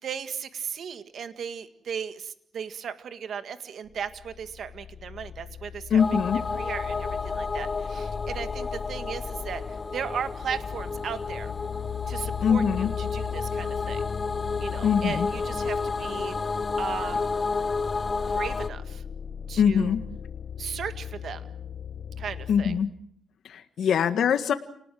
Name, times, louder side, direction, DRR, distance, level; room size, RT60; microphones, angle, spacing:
voice 1, 0.0-6.0 6.6-11.5 12.1-14.0 14.6-16.4 16.8-17.4 18.3-19.0 19.5-20.0 20.6-21.4 22.2-22.7 23.8-23.9, right 7 dB, 70° right, 10 dB, 1.8 m, -36 dB
sound 1, 3.9-22.8, left 8 dB, 65° left, 2.1 m, -38 dB
voice 2, 5.9-6.4 12.4-12.9 14.8-15.3 19.6-20.0 22.5-22.9 23.5-24.5, left 7 dB, 80° left, 9 dB, 1.7 m, -23 dB
sound 2, 6.0-18.7, left 4 dB, 35° left, 1.0 m, -31 dB
29.5 x 19.5 x 7.7 m, 0.68 s
cardioid pair, 85°, 0 cm